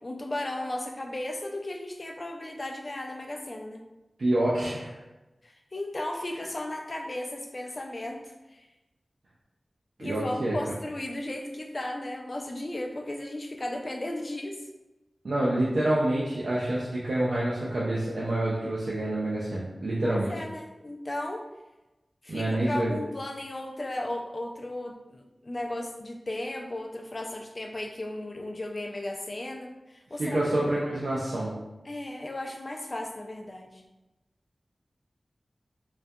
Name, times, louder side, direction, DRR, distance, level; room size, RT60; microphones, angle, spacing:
voice 1, 0.0-3.8 5.4-8.6 10.0-14.6 20.0-21.4 22.2-30.4 31.9-33.8, left 1 dB, 45° left, 2 dB, 0.3 m, -35 dB
voice 2, 4.2-5.0 10.0-10.6 15.2-20.3 22.3-23.0 30.2-31.5, right 1 dB, 85° right, -6 dB, 0.4 m, -27 dB
2.3 x 2.2 x 2.6 m, 1.0 s
wide cardioid pair, 75°, 0 cm